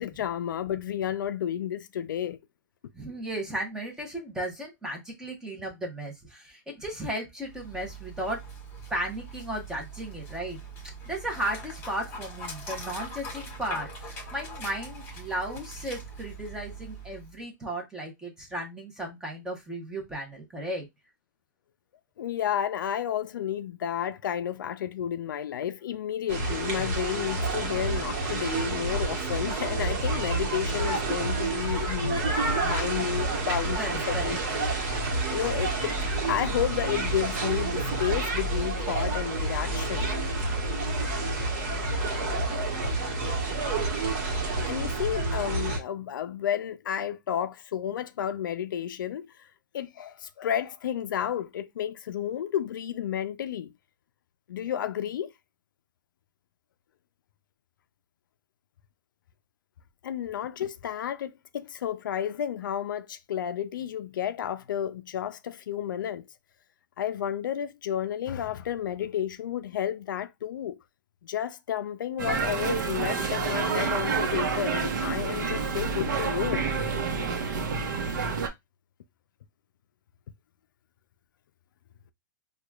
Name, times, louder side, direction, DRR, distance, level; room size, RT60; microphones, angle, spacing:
voice 1, 0.0-2.4 22.2-34.7 35.3-35.9 36.3-40.1 41.8-41.9 44.0-44.2 44.5-49.3 49.7-53.7 54.5-55.3 60.0-66.3 67.0-70.8 71.2-76.6, left 10 dB, 80° left, 0.4 m, -31 dB
voice 2, 2.9-8.4 8.9-10.6 11.1-20.9 33.8-34.6, right 1 dB, 5° right, 0.9 m, -35 dB
Dog, 7.4-17.4, right 1 dB, 20° left, 1.5 m, -41 dB
sound 1, 26.3-45.8, right 2 dB, 45° right, 1.2 m, -29 dB
sound 2, 72.2-78.5, right 5 dB, 70° right, 0.8 m, -28 dB
4.8 x 2.3 x 2.3 m
hypercardioid pair, 150°, 11 cm